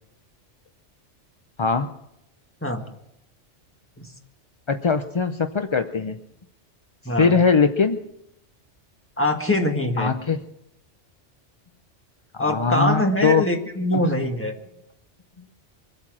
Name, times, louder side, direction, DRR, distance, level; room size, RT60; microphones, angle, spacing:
voice 1, 4.7-6.2 7.2-8.0 10.0-10.4 12.3-13.4 13.9-14.0, left 5 dB, 40° left, 7 dB, 0.4 m, -21 dB
voice 2, 7.0-7.4 9.2-10.1 12.4-14.5, left 1 dB, 10° left, 3 dB, 1.5 m, -23 dB
24.0 x 8.5 x 6.1 m, 0.82 s
omnidirectional pair, 1.2 m